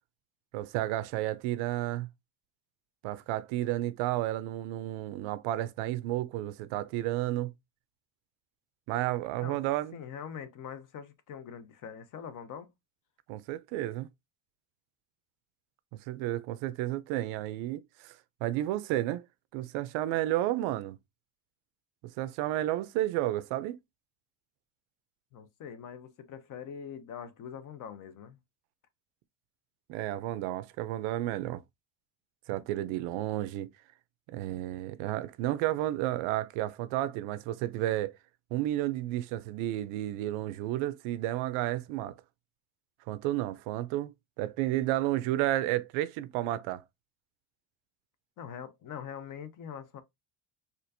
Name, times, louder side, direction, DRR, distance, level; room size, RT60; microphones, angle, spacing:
voice 1, 0.5-2.1 3.0-7.5 8.9-10.0 13.3-14.1 16.1-18.1 18.4-19.2 19.5-21.0 22.2-23.8 29.9-31.6 32.5-33.7 34.3-38.1 38.5-42.2 43.1-46.8, right 14 dB, 70° right, 0.6 m, -32 dB
voice 2, 9.9-12.7 25.3-28.4 48.4-50.0, left 8 dB, 40° left, 0.6 m, -43 dB
4.4 x 2.5 x 2.6 m
cardioid pair, 135°, 49 cm